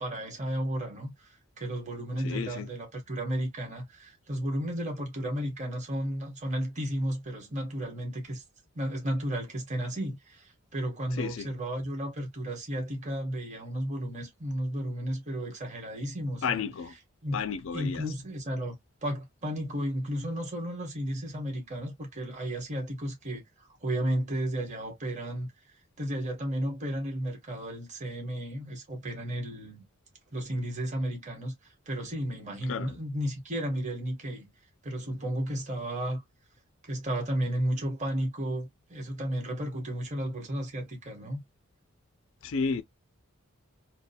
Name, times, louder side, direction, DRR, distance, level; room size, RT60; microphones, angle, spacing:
voice 1, 0.0-8.4 8.7-16.7 17.2-17.4 17.7-18.7 19.0-23.4 23.8-25.5 26.0-29.8 30.3-31.5 31.9-34.5 34.8-36.2 36.8-41.4, right 1 dB, 35° right, 1.1 m, -33 dB
voice 2, 2.2-2.7 11.2-11.5 16.4-16.9 17.3-18.0 32.7-33.0 42.4-42.8, left 5 dB, 65° left, 0.4 m, -32 dB
2.5 x 2.1 x 2.7 m
head